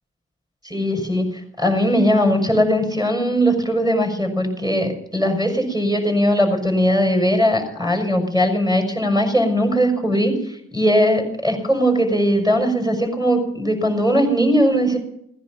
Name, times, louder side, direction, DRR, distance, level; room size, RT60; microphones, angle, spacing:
voice 1, 0.6-1.3 1.6-15.0, equal, 10° right, 4 dB, 6.4 m, -19 dB
18.5 x 10.5 x 7.4 m, 0.74 s
cardioid pair, 65°, 34 cm